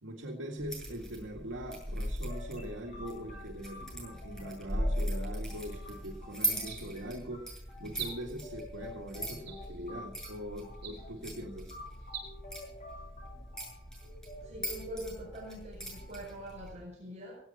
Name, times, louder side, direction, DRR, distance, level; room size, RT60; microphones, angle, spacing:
voice 1, 0.0-11.7, right 1 dB, 85° right, 1 dB, 2.1 m, -42 dB
sound 1, 0.6-16.7, equal, 5° left, 7.9 m, -39 dB
sound 2, 2.3-16.6, left 2 dB, 35° left, 8.0 m, -51 dB
sound 3, 5.6-5.9 6.5-7.2 7.9-8.5 9.4-10.0 10.7-11.3 12.0-12.3, right 7 dB, 60° right, 3.7 m, -45 dB
voice 2, 14.4-17.4, right 1 dB, 35° right, -3 dB, 5.5 m, -44 dB
17.5 x 17.0 x 4.3 m, 0.66 s
head